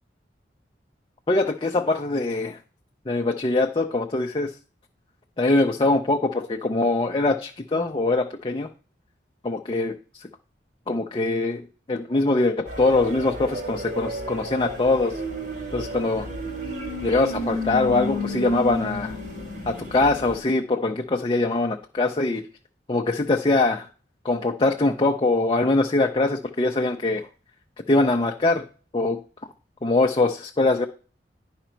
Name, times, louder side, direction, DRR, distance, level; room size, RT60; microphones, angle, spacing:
voice 1, 1.3-2.6 3.1-4.5 5.4-8.7 9.4-10.3 10.9-15.2 15.7-16.3 17.0-19.2 19.7-22.4 22.9-23.9 24.2-27.3 27.9-28.6 28.9-29.2 29.8-30.9, left 2 dB, 30° left, 3 dB, 0.5 m, -23 dB
sound 1, 12.7-20.4, left 1 dB, 65° right, 3.4 m, -32 dB
10.5 x 5.0 x 4.4 m, 0.38 s
head